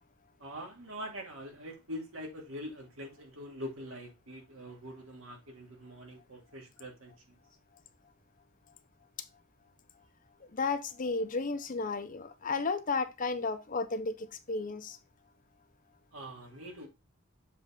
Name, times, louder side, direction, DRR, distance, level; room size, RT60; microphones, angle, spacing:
voice 1, 0.4-7.4 16.1-16.9, equal, 70° right, 2.3 m, -44 dB
voice 2, 10.5-15.0, left 4 dB, 40° left, 0.7 m, -33 dB
7.4 x 3.8 x 3.7 m
head